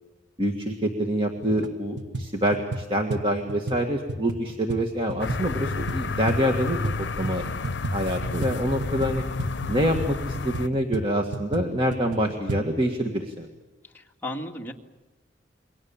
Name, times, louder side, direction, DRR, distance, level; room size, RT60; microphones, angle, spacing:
voice 1, 0.4-6.9 7.2-7.4 7.9-9.2 9.7-13.5, equal, 30° right, 4 dB, 1.8 m, -26 dB
sound 1, 1.4-1.7 2.0-7.0 7.2-12.6, right 2 dB, 70° right, 1.5 m, -33 dB
sound 2, 5.2-10.7, left 4 dB, 70° left, 0.7 m, -31 dB
voice 2, 13.9-14.7, left 1 dB, 10° left, 0 dB, 2.1 m, -34 dB
28.5 x 23.0 x 7.2 m, 1.2 s
head